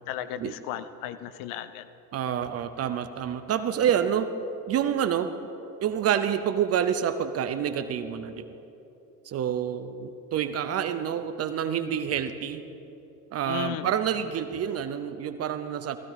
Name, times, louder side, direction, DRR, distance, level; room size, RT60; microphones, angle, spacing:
voice 1, 0.1-1.9 13.5-13.9, left 12 dB, 45° left, 12 dB, 0.6 m, -35 dB
voice 2, 2.1-4.4 4.7-5.3 5.8-8.5 9.2-12.6 13.3-16.0, right 9 dB, 30° right, 10 dB, 0.6 m, -28 dB
16.0 x 14.5 x 3.6 m, 2.9 s
figure-of-eight pair, 60°, 49 cm